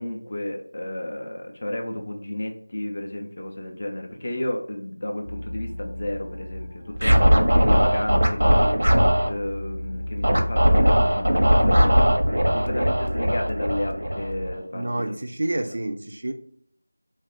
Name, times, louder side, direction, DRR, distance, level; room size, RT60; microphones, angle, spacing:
voice 1, 0.0-8.8 9.2-12.0 12.5-15.1 15.6-15.7, left 1 dB, 30° left, 2 dB, 0.4 m, -32 dB
sound 1, 5.2-14.5, left 1 dB, 90° left, 0.7 m, -36 dB
Scratching (performance technique), 7.0-9.3 10.2-14.5, equal, 85° right, 0.7 m, -19 dB
voice 2, 14.7-16.3, right 1 dB, 40° right, 5 dB, 0.3 m, -28 dB
2.4 x 2.4 x 3.4 m, 0.63 s
figure-of-eight pair, 180°, 0 cm